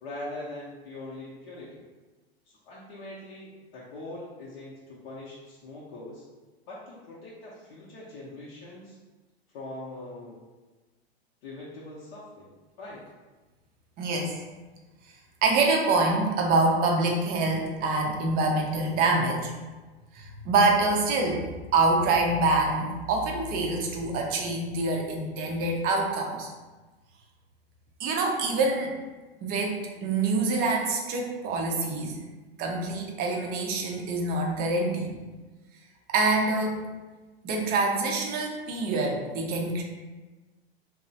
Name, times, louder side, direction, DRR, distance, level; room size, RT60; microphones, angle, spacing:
voice 1, 0.0-1.8 2.4-6.2 6.7-9.0 9.5-10.4 11.4-12.5 12.8-13.0, left 2 dB, 50° left, -7 dB, 0.6 m, -42 dB
voice 2, 14.0-14.4 15.4-19.5 20.1-26.5 28.0-28.9 29.4-32.2 32.6-35.1 36.1-36.8 37.4-39.8, right 3 dB, 30° right, 1 dB, 0.5 m, -26 dB
2.9 x 2.0 x 2.6 m, 1.2 s
hypercardioid pair, 110°, 31 cm